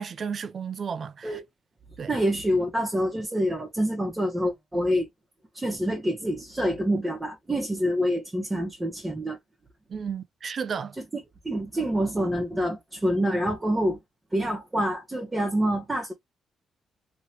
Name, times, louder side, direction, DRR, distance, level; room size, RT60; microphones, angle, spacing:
voice 1, 0.0-1.4 2.0-2.1 9.9-10.9, right 6 dB, 45° right, 0.4 m, -33 dB
voice 2, 2.1-5.1 5.5-9.4 11.4-14.0 14.3-16.1, equal, 15° right, 1.1 m, -26 dB
3.1 x 3.1 x 2.8 m
cardioid pair, 105°, 0 cm